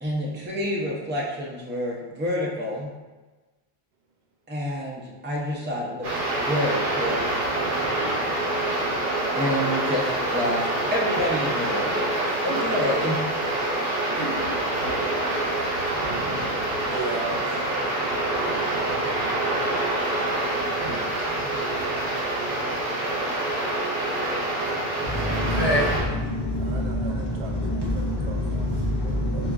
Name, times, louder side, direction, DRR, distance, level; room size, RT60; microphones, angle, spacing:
voice 1, 0.0-2.9 4.5-7.2 9.4-11.9 12.6-13.2, equal, 15° right, -4 dB, 0.4 m, -28 dB
sound 1, 6.0-26.0, right 2 dB, 55° right, 1.1 m, -26 dB
voice 2, 12.2-12.6 14.2-14.4 16.9-17.6 25.0-25.7 26.6-28.7 29.0-29.5, right 4 dB, 90° right, 1 dB, 0.8 m, -37 dB
voice 3, 25.0-29.5, left 1 dB, 30° left, -8 dB, 0.6 m, -26 dB
4.7 x 2.5 x 2.3 m, 1.2 s
omnidirectional pair, 1.1 m